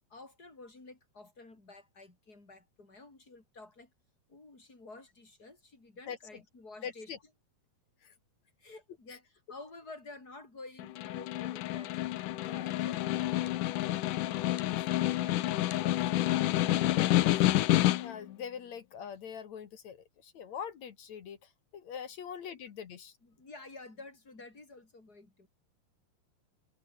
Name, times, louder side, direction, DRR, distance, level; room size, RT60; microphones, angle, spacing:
voice 1, 0.1-3.9 4.3-7.1 8.6-12.0 12.6-13.6 14.2-17.7 22.6-22.7 23.2-25.5, left 3 dB, 25° left, 6.1 m, -51 dB
voice 2, 6.8-7.2 8.0-8.1 9.1-9.2 12.4-12.7 18.0-23.1, left 7 dB, 55° left, 2.6 m, -43 dB
Snare drum, 10.8-18.3, left 15 dB, 70° left, 2.3 m, -29 dB
omnidirectional pair, 4.2 m